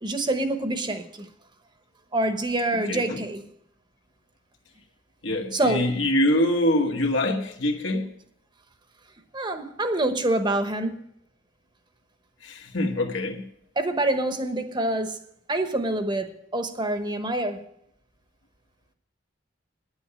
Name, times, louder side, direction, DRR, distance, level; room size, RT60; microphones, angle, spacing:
voice 1, 0.0-1.3 2.1-3.4 5.5-5.9 9.3-11.0 13.8-15.2 15.5-17.7, right 1 dB, 25° right, 1.0 m, -26 dB
voice 2, 2.9-3.2 5.2-8.1 12.4-13.4, left 1 dB, 80° left, 1.9 m, -24 dB
9.9 x 8.1 x 8.9 m
head